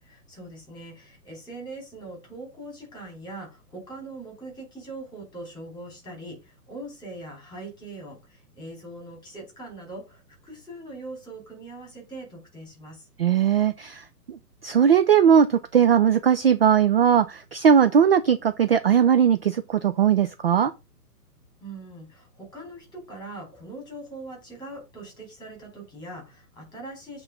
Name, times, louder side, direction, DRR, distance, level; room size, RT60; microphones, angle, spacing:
voice 1, 0.0-13.1 21.6-27.2, right 2 dB, 10° left, 4.1 m, -41 dB
voice 2, 13.2-20.7, right 8 dB, 40° right, 0.5 m, -19 dB
7.9 x 3.8 x 5.3 m
hypercardioid pair, 145°, 49 cm